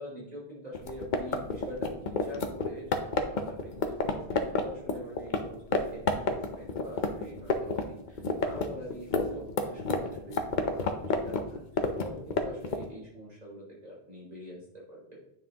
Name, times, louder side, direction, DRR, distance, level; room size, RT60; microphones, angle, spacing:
voice 1, 0.0-14.6 14.9-15.2, equal, 40° right, -4 dB, 2.7 m, -44 dB
sound 1, 0.7-5.4 5.7-5.8 6.1-7.8 8.1-12.9, left 4 dB, 50° left, 0.8 m, -28 dB
9.3 x 5.8 x 2.9 m, 0.74 s
omnidirectional pair, 1.1 m